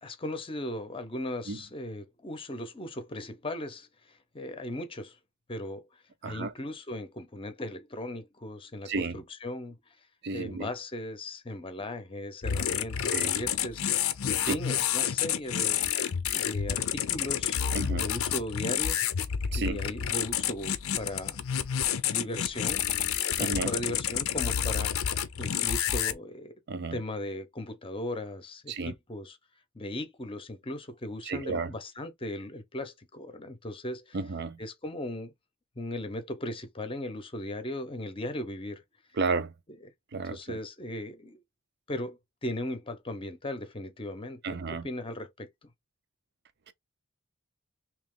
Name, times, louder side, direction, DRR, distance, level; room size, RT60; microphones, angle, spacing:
voice 1, 0.0-5.2 5.5-5.9 6.2-9.8 10.3-17.6 17.9-19.0 19.6-21.4 22.0-22.9 23.4-26.5 26.9-29.4 29.7-34.2 34.6-35.3 35.8-38.8 39.8-39.9 40.2-41.4 41.9-45.7, left 1 dB, 25° left, 0.7 m, -38 dB
voice 2, 8.9-9.2 10.2-10.7 13.1-13.3 14.5-14.6 17.7-18.1 19.5-19.8 23.4-23.7 26.7-27.0 28.7-28.9 31.3-31.7 34.1-34.6 39.2-39.5 40.1-40.6 44.4-44.9 46.7-46.8, right 4 dB, 50° right, 0.6 m, -32 dB
sound 1, 12.4-26.1, left 9 dB, 80° left, 0.5 m, -29 dB
3.0 x 2.9 x 3.6 m
head